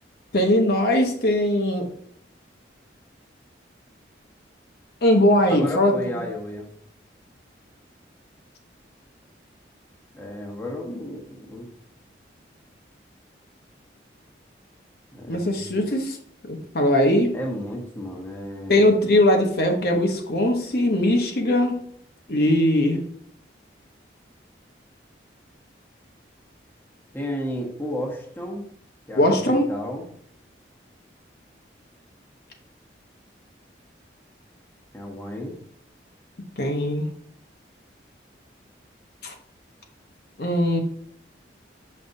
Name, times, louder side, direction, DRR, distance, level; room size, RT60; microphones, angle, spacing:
voice 1, 0.3-1.9 5.0-5.9 15.3-16.2 16.5-17.3 18.7-21.9 22.3-23.0 29.2-29.6 36.6-37.0 39.2-39.3 40.4-40.8, left 1 dB, 55° left, 2 dB, 0.8 m, -20 dB
voice 2, 5.5-6.7 10.1-11.7 15.1-15.7 17.3-18.8 27.1-28.6 29.1-30.1 34.9-35.6, left 1 dB, 10° left, -1 dB, 0.9 m, -33 dB
6.8 x 5.4 x 2.6 m, 0.64 s
head